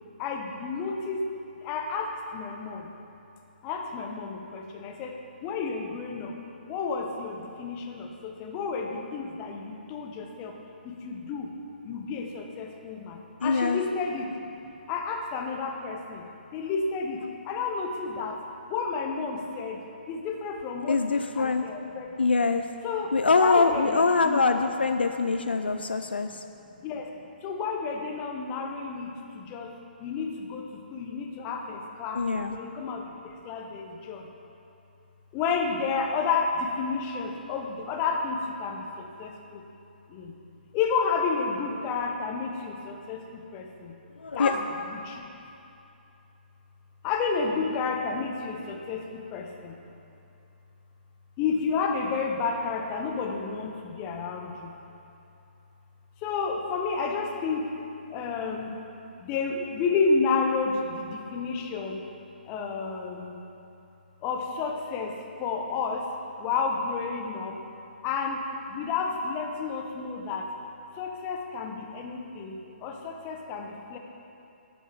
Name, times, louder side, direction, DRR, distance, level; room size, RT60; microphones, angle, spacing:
voice 1, 0.2-1.2 1.6-2.9 3.6-6.4 6.7-10.5 10.8-11.5 11.8-14.3 14.9-16.2 16.5-18.4 18.7-19.8 20.1-22.1 22.8-23.1 23.4-24.6 26.8-29.7 30.0-32.2 32.5-34.3 35.3-39.6 40.1-40.3 40.7-43.9 44.3-45.2 47.0-49.7 51.4-54.7 56.2-57.7 58.1-58.8 59.2-62.0 62.5-63.3 64.2-66.1 66.4-67.6 68.0-68.4 68.7-70.5 71.0-74.0, left 4 dB, 25° left, 3 dB, 0.8 m, -31 dB
voice 2, 13.4-13.8 20.9-21.7 22.2-22.7 23.1-26.4 32.2-32.6 44.2-44.5, left 4 dB, 80° left, 7 dB, 0.3 m, -24 dB
9.7 x 5.4 x 4.6 m, 2.8 s
figure-of-eight pair, 135°, 5 cm